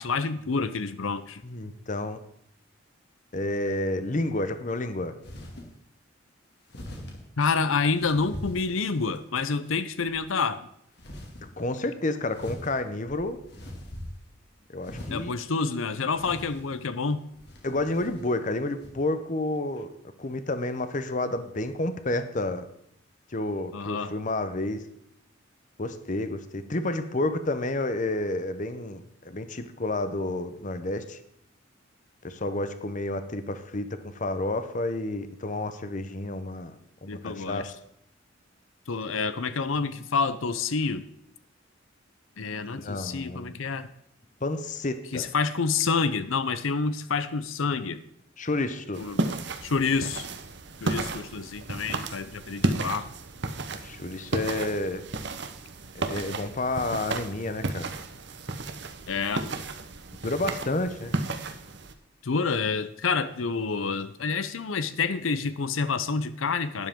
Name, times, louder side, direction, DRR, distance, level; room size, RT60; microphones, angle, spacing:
voice 1, 0.0-1.4 7.4-10.7 15.1-17.2 23.7-24.1 37.1-37.7 38.9-41.1 42.4-43.9 45.1-48.0 49.0-49.4 49.6-50.3 50.8-53.1 59.1-59.5 62.2-66.9, left 4 dB, 90° left, 12 dB, 0.7 m, -28 dB
voice 2, 1.4-2.2 3.3-5.1 11.6-13.4 14.7-15.3 17.6-19.9 20.2-22.7 23.3-24.8 25.8-31.2 32.2-36.7 37.0-37.7 42.7-43.5 44.4-45.3 48.4-49.0 53.8-55.0 55.9-57.9 60.2-61.2, left 2 dB, 40° left, 10 dB, 0.9 m, -30 dB
sound 1, 5.2-5.7 6.7-7.2 7.9-9.2 9.6-10.2 11.0-11.5 12.3-14.4 14.8-15.4 16.1-16.8 17.3-18.3 18.8-18.9, left 1 dB, 55° left, 2.4 m, -42 dB
sound 2, 48.9-61.9, right 2 dB, 60° right, 1.0 m, -33 dB
12.0 x 10.5 x 3.7 m, 0.74 s
head